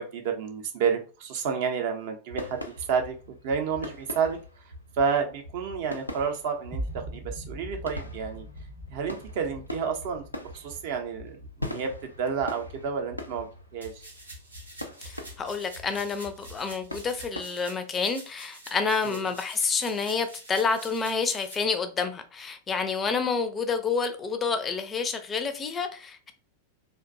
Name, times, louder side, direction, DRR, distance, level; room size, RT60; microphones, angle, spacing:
voice 1, 0.0-3.1 3.4-4.4 5.0-8.4 8.9-11.9 12.2-13.9 19.1-19.2, right 6 dB, 50° right, 0.5 m, -30 dB
sound 1, 2.3-17.4, left 1 dB, 90° left, 0.4 m, -42 dB
sound 2, 6.7-12.7, right 1 dB, 25° right, 0.8 m, -41 dB
sound 3, 13.8-21.5, right 1 dB, 85° right, 0.8 m, -47 dB
voice 2, 15.1-26.3, left 5 dB, 20° left, 0.4 m, -29 dB
2.5 x 2.2 x 2.5 m
figure-of-eight pair, 90°, 0 cm